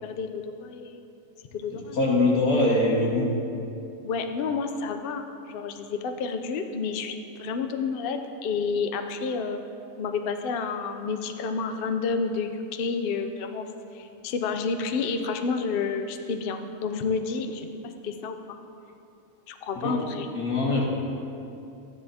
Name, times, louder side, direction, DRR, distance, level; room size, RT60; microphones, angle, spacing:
voice 1, 0.0-1.0 1.5-2.0 4.0-9.6 10.0-18.6 19.5-20.3, left 5 dB, 55° left, 6 dB, 0.6 m, -30 dB
voice 2, 1.7-3.3 19.8-20.0 20.3-20.8, left 2 dB, 90° left, -4 dB, 2.2 m, -23 dB
13.5 x 10.0 x 2.8 m, 2.7 s
omnidirectional pair, 1.5 m